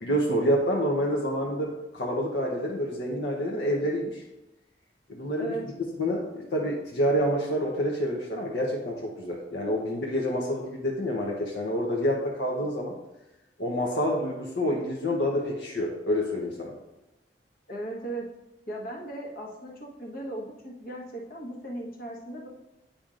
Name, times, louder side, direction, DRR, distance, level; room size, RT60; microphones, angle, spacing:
voice 1, 0.0-4.2 5.1-5.6 6.0-12.9 13.6-16.7, equal, 80° left, -1 dB, 0.8 m, -28 dB
voice 2, 17.7-18.2 18.7-22.5, right 1 dB, 55° left, -1 dB, 1.2 m, -37 dB
8.8 x 5.2 x 2.5 m, 0.97 s
head